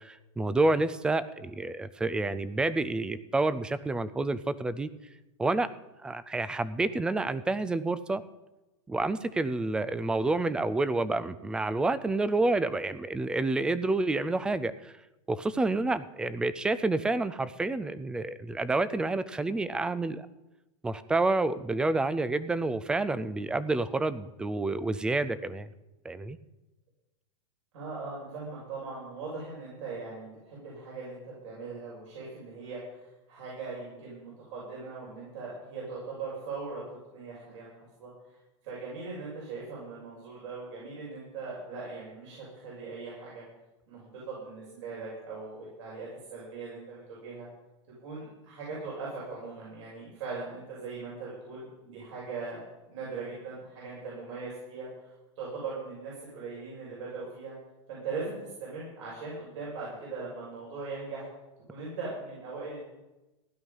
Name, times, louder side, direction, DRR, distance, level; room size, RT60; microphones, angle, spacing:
voice 1, 0.0-4.9 5.4-5.7 6.0-8.2 8.9-14.9 15.3-20.3 20.8-25.7 26.0-26.4, right 2 dB, 5° right, 16 dB, 0.4 m, -29 dB
voice 2, 27.7-36.8 37.1-37.7 38.0-38.1 38.6-43.4 43.9-47.5 48.0-52.6 52.9-57.5 57.9-61.2 61.7-62.8, right 4 dB, 65° right, -6 dB, 6.7 m, -40 dB
16.0 x 11.5 x 5.4 m, 1.0 s
supercardioid pair, 155°, 16 cm